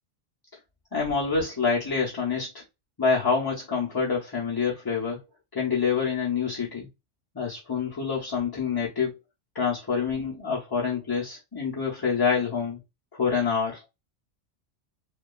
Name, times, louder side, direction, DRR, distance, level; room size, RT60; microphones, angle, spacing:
voice 1, 0.9-2.6 3.0-5.2 5.5-6.9 7.3-9.1 9.5-12.8 13.1-13.8, left 5 dB, 30° left, 0.4 m, -27 dB
2.7 x 2.3 x 2.2 m
omnidirectional pair, 1.2 m